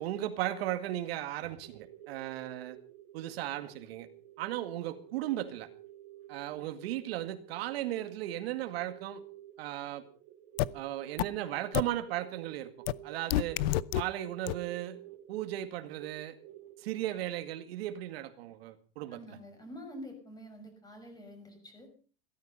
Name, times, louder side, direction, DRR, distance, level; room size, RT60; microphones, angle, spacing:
voice 1, 0.0-2.8 3.1-4.1 4.4-5.7 6.3-9.2 9.6-10.0 10.7-12.7 13.0-13.6 13.9-15.0 15.3-16.4 16.8-19.2, right 13 dB, 80° right, 9 dB, 2.1 m, -36 dB
sound 1, 1.6-17.7, right 12 dB, 50° right, 3.2 m, -51 dB
sound 2, 10.6-10.7 11.2-11.3 11.7-11.8 12.9-13.0 13.3-14.0 14.5-14.6, left 15 dB, 75° left, 0.8 m, -27 dB
voice 2, 19.1-21.9, equal, 10° left, 5 dB, 6.5 m, -47 dB
17.0 x 13.5 x 5.6 m, 0.40 s
supercardioid pair, 150°, 30 cm